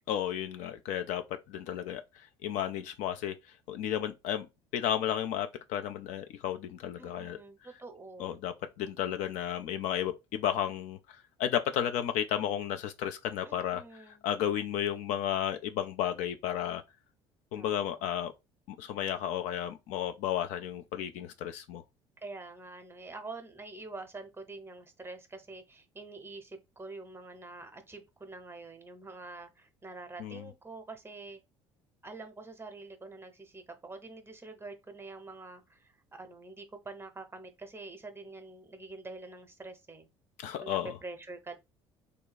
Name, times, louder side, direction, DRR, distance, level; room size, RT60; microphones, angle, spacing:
voice 1, 0.1-3.4 3.7-4.5 4.7-7.4 8.2-13.8 14.2-16.8 17.5-18.3 18.7-21.8 30.2-30.5 40.4-41.0, left 10 dB, 55° left, 0.4 m, -33 dB
voice 2, 7.0-8.4 13.4-14.3 17.5-18.0 22.2-31.4 32.0-40.1 40.6-41.6, right 3 dB, 15° right, 0.8 m, -46 dB
3.3 x 2.2 x 4.0 m
figure-of-eight pair, 55°, 15 cm